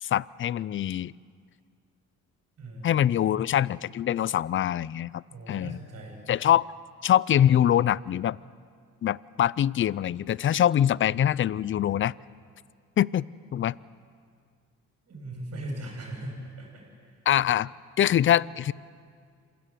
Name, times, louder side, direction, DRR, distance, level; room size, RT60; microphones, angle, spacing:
voice 1, 0.0-1.1 2.8-5.8 6.3-6.6 7.0-8.4 9.0-12.1 13.0-13.2 13.5-13.8 17.3-17.7 18.0-18.7, left 11 dB, 40° left, 22 dB, 0.5 m, -24 dB
voice 2, 2.6-3.3 5.3-6.2 15.1-17.2, right 1 dB, 55° right, 1 dB, 7.7 m, -39 dB
27.0 x 16.5 x 7.6 m, 2.2 s
cardioid pair, 90°, 30 cm